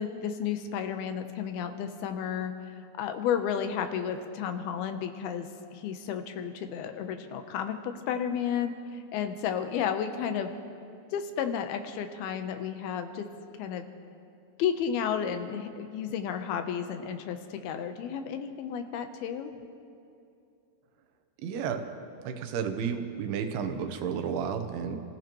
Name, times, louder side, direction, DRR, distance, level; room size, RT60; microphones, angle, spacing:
voice 1, 0.0-2.5 2.9-10.5 11.1-13.3 13.6-13.9 14.6-19.5, left 8 dB, 80° left, 7 dB, 2.7 m, -32 dB
voice 2, 21.4-21.9 22.2-25.0, right 7 dB, 80° right, 6 dB, 2.9 m, -32 dB
29.5 x 15.5 x 3.0 m, 2.6 s
omnidirectional pair, 4.5 m